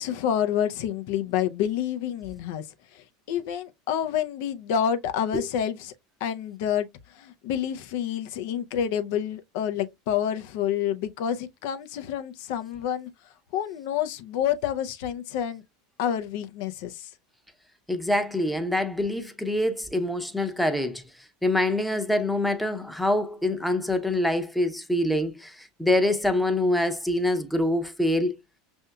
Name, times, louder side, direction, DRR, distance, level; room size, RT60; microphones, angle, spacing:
voice 1, 0.0-2.7 2.9-5.9 6.2-13.1 13.5-15.6 16.0-17.1, left 9 dB, 65° left, 0.5 m, -28 dB
voice 2, 17.9-21.0 21.4-25.5 25.8-28.3, left 1 dB, 5° left, 0.7 m, -25 dB
5.5 x 2.7 x 2.2 m
hypercardioid pair, 90°, 0 cm